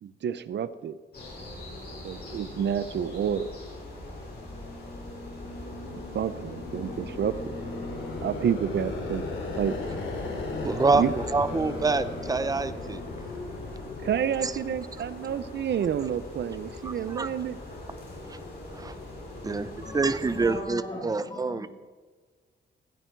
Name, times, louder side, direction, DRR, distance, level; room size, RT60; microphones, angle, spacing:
voice 1, 0.0-1.0 2.0-3.5 6.1-7.5 8.2-9.2 9.6-9.7 10.9-11.1 14.0-17.6, right 8 dB, 65° right, 14 dB, 0.7 m, -29 dB
sound 1, 1.1-20.5, left 1 dB, 55° left, 5.8 m, -41 dB
sound 2, 5.3-15.0, left 3 dB, 85° left, 3.5 m, -37 dB
voice 2, 10.6-13.0 14.4-14.5 16.8-17.3 18.3-18.4 18.7-18.9 19.4-21.7, right 3 dB, 20° right, 13 dB, 0.6 m, -27 dB
voice 3, 19.5-21.7, left 1 dB, 25° left, -4 dB, 2.7 m, -40 dB
18.5 x 13.5 x 4.6 m, 1.5 s
wide cardioid pair, 155°, 19 cm